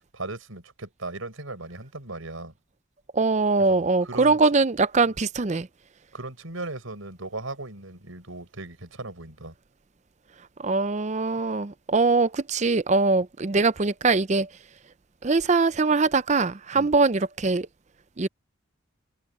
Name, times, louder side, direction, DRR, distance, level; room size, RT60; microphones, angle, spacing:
voice 1, 0.1-2.5 3.7-4.4 6.1-9.5 16.7-16.9, right 2 dB, 80° right, 5.0 m, -37 dB
voice 2, 3.1-5.7 10.6-14.5 15.2-17.7 18.2-18.3, right 3 dB, 35° right, 0.5 m, -22 dB
head